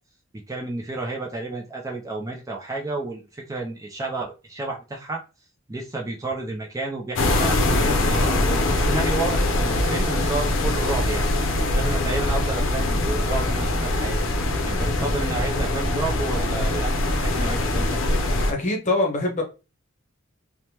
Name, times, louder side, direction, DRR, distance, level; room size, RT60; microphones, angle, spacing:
voice 1, 0.5-5.2 5.7-11.3 11.7-14.2 14.7-18.1, right 3 dB, 15° right, 0.4 m, -31 dB
sound 1, 7.2-18.5, left 2 dB, 70° left, 0.5 m, -23 dB
voice 2, 18.5-19.4, left 2 dB, 40° left, 0.8 m, -23 dB
3.2 x 2.0 x 2.8 m
head